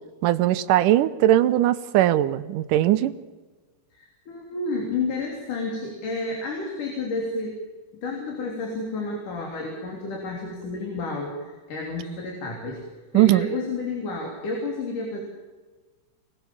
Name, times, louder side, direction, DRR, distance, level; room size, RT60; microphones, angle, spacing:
voice 1, 0.2-3.2 13.1-13.5, right 13 dB, 80° right, 13 dB, 2.4 m, -20 dB
voice 2, 3.9-7.6 8.0-12.8 13.1-15.2, left 3 dB, 75° left, 0 dB, 4.9 m, -30 dB
25.5 x 20.0 x 7.2 m, 1.3 s
omnidirectional pair, 3.7 m